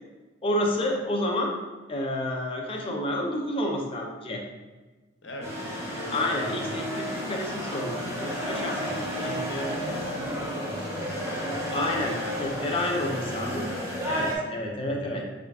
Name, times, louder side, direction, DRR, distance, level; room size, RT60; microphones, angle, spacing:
voice 1, 0.4-1.5 1.9-4.4 6.1-9.3 11.7-13.7 14.1-15.2, left 1 dB, 30° left, 0 dB, 0.5 m, -30 dB
voice 2, 5.2-7.1 8.8-12.1 14.5-15.3, left 1 dB, 75° left, 1 dB, 0.7 m, -40 dB
sound 1, 5.4-14.4, equal, 15° right, 0.8 m, -32 dB
4.1 x 3.7 x 2.3 m, 1.3 s
head